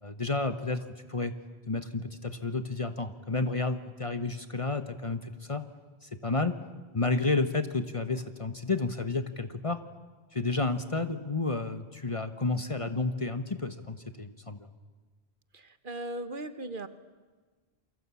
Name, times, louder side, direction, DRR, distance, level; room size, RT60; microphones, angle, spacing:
voice 1, 0.0-1.3 1.7-5.6 6.0-6.5 6.9-9.8 10.3-14.7, left 3 dB, 30° left, 10 dB, 1.2 m, -31 dB
voice 2, 15.5-16.9, right 1 dB, 50° right, 11 dB, 1.3 m, -38 dB
28.5 x 24.0 x 8.5 m, 1.4 s
omnidirectional pair, 1.1 m